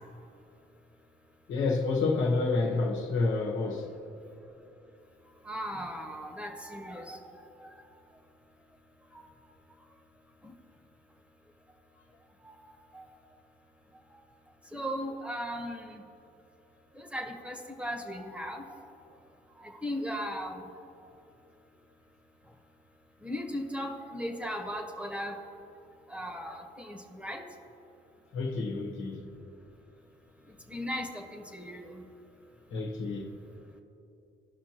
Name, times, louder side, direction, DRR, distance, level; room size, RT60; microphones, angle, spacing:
voice 1, 1.5-3.9 28.3-29.2 32.7-33.3, left 3 dB, 80° left, 1.1 m, -29 dB
voice 2, 5.4-7.7 9.1-9.3 10.4-10.5 12.4-13.0 14.1-14.2 14.7-16.0 17.0-18.7 19.6-20.7 23.2-25.4 26.1-27.4 30.7-32.0, equal, 5° right, 1.1 m, -37 dB
15.0 x 5.9 x 2.9 m
cardioid pair, 90°, 20 cm